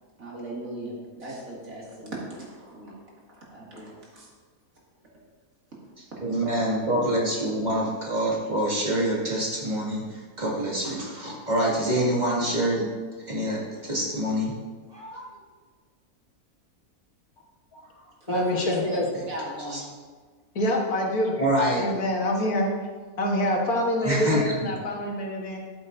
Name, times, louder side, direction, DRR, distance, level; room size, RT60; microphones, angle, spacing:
voice 1, 0.2-3.0 3.5-4.3 18.2-19.0 19.3-19.9, equal, 65° right, -5 dB, 2.7 m, -36 dB
voice 2, 6.2-10.0 10.4-12.9 13.3-14.5 14.9-15.2 19.7-19.8 21.4-21.8 24.0-24.7, right 1 dB, 30° right, -4 dB, 2.2 m, -26 dB
voice 3, 18.3-19.1 20.6-21.4 21.8-22.7 23.2-25.6, left 1 dB, 80° left, 0 dB, 1.8 m, -26 dB
13.0 x 8.2 x 2.6 m, 1.5 s
omnidirectional pair, 1.5 m